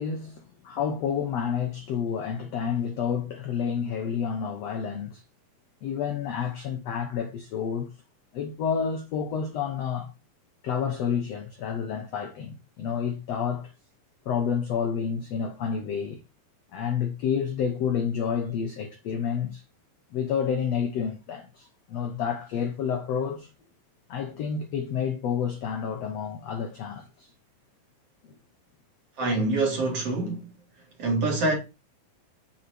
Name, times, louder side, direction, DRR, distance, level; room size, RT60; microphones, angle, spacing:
voice 1, 0.0-5.2 5.8-7.9 8.3-10.1 10.6-13.7 14.2-16.2 16.7-19.6 20.1-23.5 24.1-27.3 28.2-28.3, left 7 dB, 75° left, 1.5 m, -29 dB
voice 2, 29.2-30.5 31.0-31.5, right 2 dB, 45° right, 2.8 m, -25 dB
8.0 x 4.5 x 4.3 m
omnidirectional pair, 4.2 m